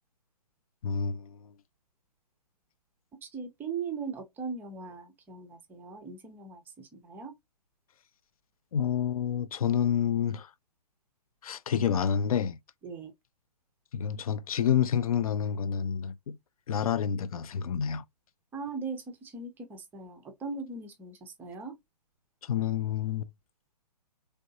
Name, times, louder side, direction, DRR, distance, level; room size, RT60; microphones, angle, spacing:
voice 1, 0.8-1.5 8.7-10.5 11.4-12.6 13.9-16.4 16.7-18.0 22.4-23.3, left 8 dB, 60° left, 0.4 m, -28 dB
voice 2, 3.2-7.3 12.8-13.1 18.5-21.8, right 5 dB, 10° right, 0.5 m, -39 dB
3.2 x 2.6 x 2.6 m
figure-of-eight pair, 125°, 21 cm